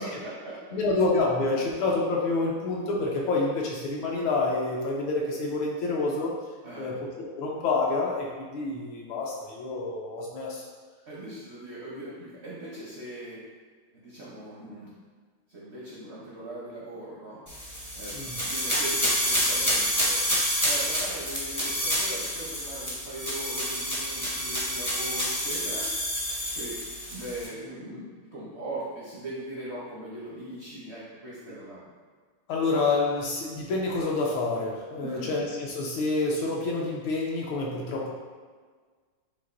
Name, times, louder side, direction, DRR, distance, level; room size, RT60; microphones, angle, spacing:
voice 1, 0.0-0.7 6.6-7.0 11.1-13.4 13.9-14.9 15.5-17.4 17.9-20.3 20.6-25.9 26.6-26.8 27.1-31.9 35.0-35.4, right 1 dB, 60° right, -7 dB, 0.6 m, -40 dB
voice 2, 0.7-6.4 6.8-10.6 18.1-18.4 32.5-38.1, left 3 dB, 80° left, -2 dB, 1.4 m, -28 dB
sound 1, 17.5-27.5, equal, 20° left, 0.4 m, -28 dB
7.1 x 2.5 x 2.5 m, 1.5 s
omnidirectional pair, 2.3 m